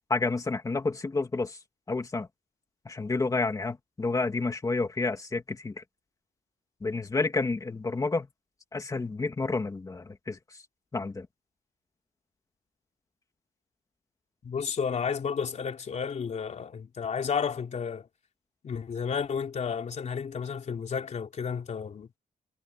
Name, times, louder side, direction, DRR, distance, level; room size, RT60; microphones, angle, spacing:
voice 1, 0.1-1.6 1.9-2.3 2.8-5.8 6.8-8.3 8.7-10.4 10.9-11.3, left 3 dB, 20° left, 2.6 m, -30 dB
voice 2, 14.4-18.1 18.6-22.1, left 6 dB, 45° left, 3.4 m, -32 dB
wide cardioid pair, 170°, 16 cm